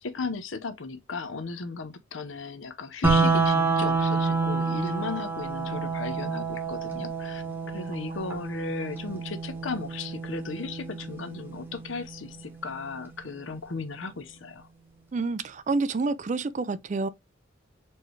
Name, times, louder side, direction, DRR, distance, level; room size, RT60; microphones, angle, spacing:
voice 1, 0.0-14.7, left 4 dB, 85° left, 0.7 m, -36 dB
sound 1, 3.0-13.0, right 4 dB, 10° right, 1.0 m, -28 dB
voice 2, 15.1-17.1, right 3 dB, 40° right, 0.4 m, -28 dB
4.4 x 3.2 x 3.2 m
head